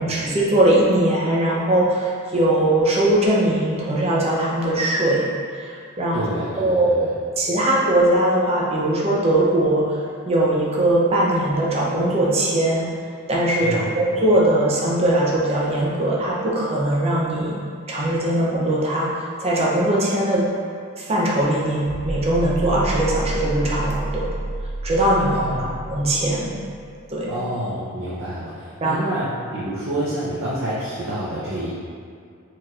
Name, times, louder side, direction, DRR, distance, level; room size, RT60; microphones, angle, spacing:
voice 1, 0.0-5.3 5.6-6.2 6.6-7.1 7.4-10.0 10.3-12.9 13.3-17.6 17.9-20.5 21.0-24.3 24.8-26.5 27.1-27.3 28.8-29.0, right 1 dB, 30° right, -4 dB, 0.7 m, -20 dB
voice 2, 6.1-7.1 13.6-13.9 25.3-25.7 27.3-31.7, right 1 dB, 60° right, -9 dB, 0.8 m, -28 dB
sound 1, 21.9-26.9, right 2 dB, 50° left, 0.7 m, -30 dB
4.4 x 4.2 x 2.5 m, 2.2 s
head